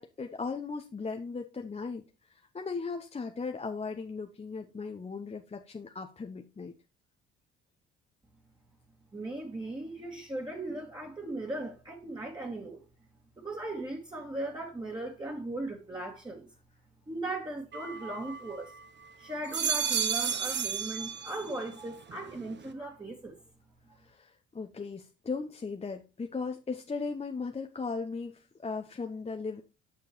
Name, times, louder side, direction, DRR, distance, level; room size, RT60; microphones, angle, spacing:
voice 1, 0.0-2.0 2.3-6.7 24.0-29.6, left 4 dB, 20° left, 0.8 m, -37 dB
voice 2, 9.1-12.8 13.4-16.5 17.1-18.7 19.2-23.4, right 2 dB, 15° right, 1.9 m, -38 dB
sound 1, 17.7-18.9 19.3-21.7 22.1-22.7, right 7 dB, 35° right, 1.0 m, -33 dB
7.3 x 6.4 x 3.0 m
hypercardioid pair, 55°, 30 cm